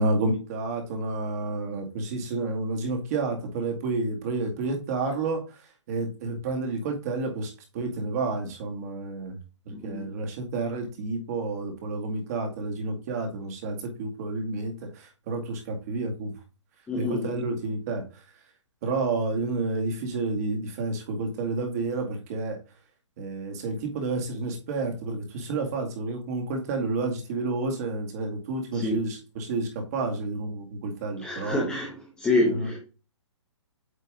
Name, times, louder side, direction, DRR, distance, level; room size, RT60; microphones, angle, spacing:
voice 1, 0.0-5.4 5.9-9.4 9.7-16.3 17.0-18.0 18.8-22.6 23.2-31.7 32.4-32.7, right 3 dB, 30° right, 2.1 m, -30 dB
voice 2, 9.7-10.1 16.9-17.3 28.7-29.1 31.2-32.8, left 2 dB, 5° left, 0.9 m, -27 dB
8.5 x 3.3 x 3.6 m
hypercardioid pair, 160°, 16 cm